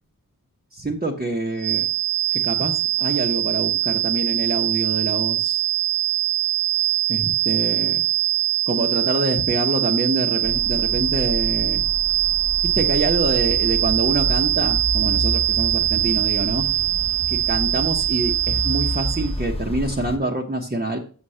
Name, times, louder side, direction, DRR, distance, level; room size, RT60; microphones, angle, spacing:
voice 1, 0.7-1.8 2.3-5.6 7.1-8.0 8.7-11.8 12.7-16.6 17.3-21.0, right 2 dB, 25° right, -1 dB, 1.3 m, -26 dB
sound 1, 1.6-19.3, right 12 dB, 50° right, 0.7 m, -22 dB
sound 2, 10.4-20.2, left 1 dB, 15° left, 1.2 m, -29 dB
7.0 x 6.6 x 5.7 m, 0.41 s
wide cardioid pair, 75°, 34 cm